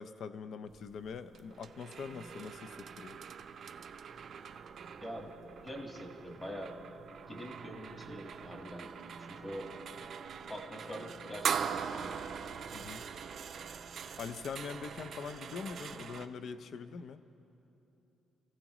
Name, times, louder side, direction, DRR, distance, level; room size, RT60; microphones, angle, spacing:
voice 1, 0.0-3.2 12.7-13.0 14.2-17.2, left 6 dB, 50° left, 11 dB, 0.5 m, -43 dB
sound 1, 0.7-16.3, right 7 dB, 45° right, 0.5 m, -42 dB
voice 2, 5.6-6.7 7.3-8.9 9.2-9.7 10.5-12.1, equal, 20° left, 1 dB, 1.5 m, -44 dB
27.0 x 15.5 x 3.0 m, 2.9 s
cardioid pair, 165°, 0 cm